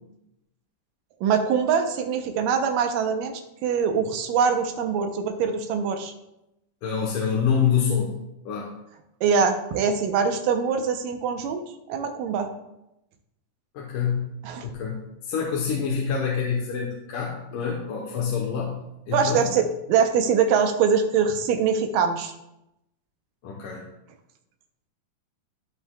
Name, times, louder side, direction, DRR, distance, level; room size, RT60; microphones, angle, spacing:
voice 1, 1.2-3.3 3.6-6.1 9.2-11.6 11.9-12.5 14.4-14.7 19.1-22.3, right 6 dB, 90° right, 6 dB, 2.5 m, -23 dB
voice 2, 6.8-8.1 8.5-8.8 13.7-14.3 14.6-19.5 23.4-23.9, left 7 dB, 80° left, -3 dB, 2.6 m, -26 dB
15.0 x 5.5 x 2.3 m, 0.88 s
omnidirectional pair, 3.7 m